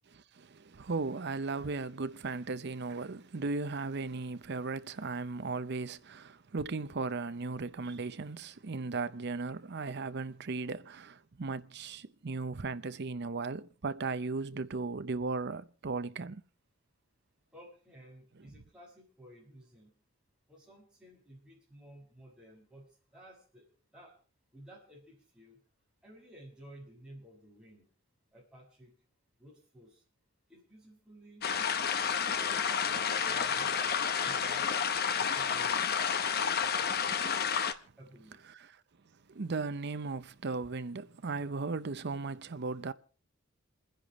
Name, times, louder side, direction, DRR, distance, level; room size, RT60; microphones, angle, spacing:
voice 1, 0.3-16.4 39.3-42.9, right 3 dB, 55° right, 0.7 m, -36 dB
voice 2, 17.5-19.9 20.5-23.6 23.9-24.2 24.5-25.6 26.0-27.8 28.3-28.9 29.4-30.0 30.5-31.5 32.0-34.7 35.2-36.0 38.0-38.5, equal, 5° right, 6.7 m, -55 dB
sound 1, 31.4-37.7, left 7 dB, 50° left, 0.9 m, -30 dB
28.5 x 10.5 x 3.1 m
head